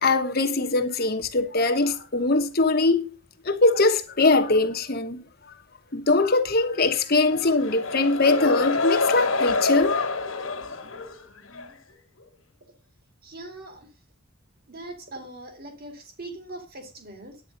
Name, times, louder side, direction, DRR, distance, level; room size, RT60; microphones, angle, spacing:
voice 1, 0.0-3.1 3.4-5.2 5.9-10.0, left 3 dB, 45° left, 1.2 m, -22 dB
sound 1, 7.3-11.8, left 3 dB, 70° left, 2.0 m, -27 dB
voice 2, 13.2-13.9 14.7-17.4, right 2 dB, 45° right, 2.4 m, -41 dB
9.9 x 8.9 x 5.2 m
head